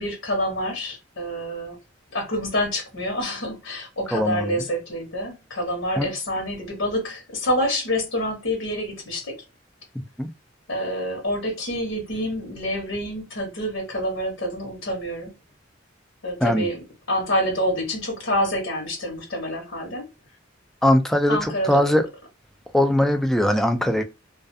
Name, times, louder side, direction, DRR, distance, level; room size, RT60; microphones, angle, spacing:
voice 1, 0.0-1.8 2.1-9.4 10.7-15.3 16.2-16.8 17.1-20.1 21.3-21.8, equal, 75° left, 1.1 m, -27 dB
voice 2, 4.1-4.6 6.0-6.1 10.2-10.3 16.4-16.7 20.8-22.1 22.7-24.0, left 1 dB, ahead, 0.3 m, -20 dB
2.4 x 2.3 x 2.6 m
head